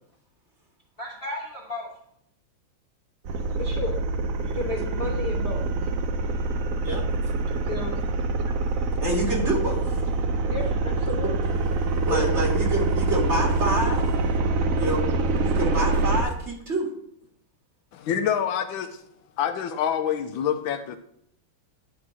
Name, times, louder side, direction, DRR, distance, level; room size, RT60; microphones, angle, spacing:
voice 1, 1.0-1.9 3.6-4.0 4.4-5.6 7.7-8.0 10.5-11.3 12.1-12.3, left 3 dB, 35° left, -3 dB, 1.1 m, -32 dB
sound 1, 3.2-16.2, right 3 dB, 75° right, 0.7 m, -25 dB
voice 2, 9.0-10.0 12.0-14.1 14.8-15.0 15.4-16.9, right 1 dB, 35° right, -1 dB, 2.3 m, -27 dB
voice 3, 17.9-19.0 19.4-21.0, left 9 dB, 80° left, 9 dB, 1.3 m, -27 dB
10.0 x 3.8 x 6.1 m, 0.71 s
omnidirectional pair, 2.2 m